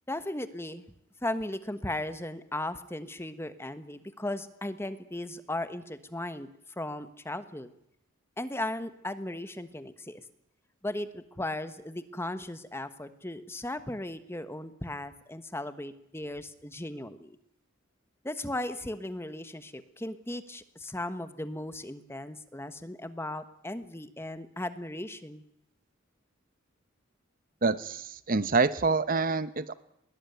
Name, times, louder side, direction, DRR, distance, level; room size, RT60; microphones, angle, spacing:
voice 1, 0.1-0.8 1.2-6.5 6.8-7.7 8.4-10.2 10.8-17.4 18.2-25.4, left 1 dB, 10° left, 11 dB, 1.2 m, -36 dB
voice 2, 27.6-29.7, right 4 dB, 45° right, 14 dB, 0.9 m, -26 dB
21.5 x 18.5 x 9.3 m, 0.76 s
head